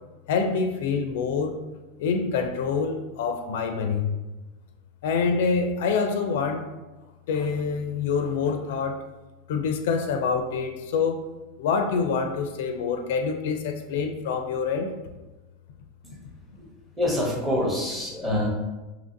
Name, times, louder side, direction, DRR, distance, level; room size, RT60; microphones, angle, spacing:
voice 1, 0.3-1.6 2.0-4.1 5.0-6.7 7.3-9.0 9.5-11.3 11.6-15.0, left 5 dB, 75° left, 6 dB, 0.4 m, -26 dB
voice 2, 17.0-18.5, left 1 dB, 10° right, -3 dB, 0.8 m, -26 dB
2.8 x 2.6 x 3.8 m, 1.1 s
supercardioid pair, 165°, 0 cm